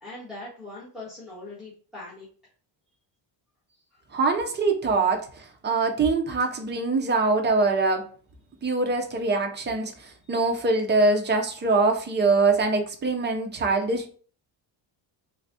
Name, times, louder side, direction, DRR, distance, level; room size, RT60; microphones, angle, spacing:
voice 1, 0.0-2.3, left 2 dB, ahead, 1.1 m, -41 dB
voice 2, 4.1-8.0 8.6-14.1, right 3 dB, 25° right, 0.4 m, -23 dB
3.4 x 3.1 x 2.6 m
cardioid pair, 165°, 49 cm